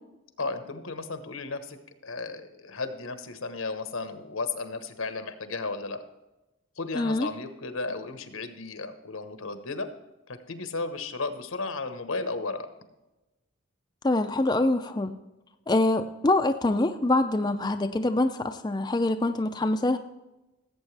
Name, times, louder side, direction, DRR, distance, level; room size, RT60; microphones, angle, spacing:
voice 1, 0.4-1.8 2.0-6.0 6.8-9.9 10.3-12.7, left 3 dB, 90° left, 9 dB, 1.2 m, -34 dB
voice 2, 6.9-7.3 14.0-15.1 15.7-20.0, left 2 dB, 20° left, 7 dB, 0.4 m, -25 dB
17.0 x 8.1 x 3.4 m, 1.0 s
head